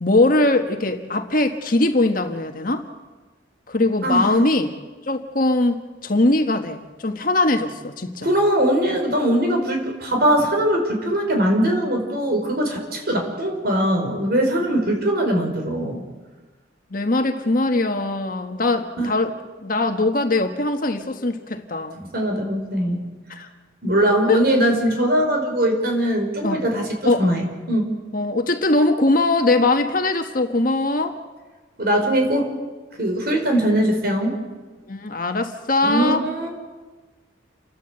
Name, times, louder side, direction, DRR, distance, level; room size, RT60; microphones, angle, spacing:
voice 1, 0.0-2.8 3.7-4.7 5.1-8.3 16.9-19.3 19.6-22.0 23.3-23.5 24.3-24.4 26.4-26.6 27.0-27.4 28.1-31.2 34.9-36.2, left 2 dB, 45° left, 6 dB, 1.5 m, -21 dB
voice 2, 4.0-4.3 8.2-16.0 19.0-19.1 22.0-23.0 23.8-27.9 31.8-32.5 33.0-34.4 35.8-36.5, right 1 dB, 55° right, 3 dB, 4.9 m, -21 dB
29.5 x 12.5 x 8.0 m, 1.3 s
head